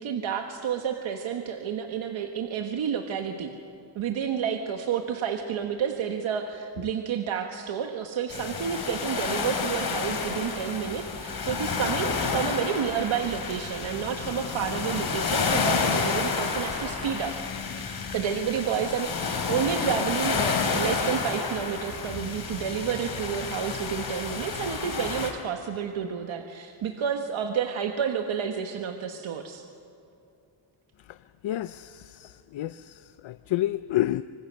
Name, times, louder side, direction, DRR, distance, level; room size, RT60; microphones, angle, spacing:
voice 1, 0.0-3.5 3.9-17.3 18.1-29.6, right 8 dB, 90° right, 4 dB, 1.5 m, -30 dB
sound 1, 8.3-25.3, left 5 dB, 50° left, 3.8 m, -30 dB
voice 2, 31.4-34.2, left 14 dB, 80° left, 12 dB, 0.7 m, -30 dB
26.0 x 25.5 x 6.7 m, 2.7 s
wide cardioid pair, 165°, 46 cm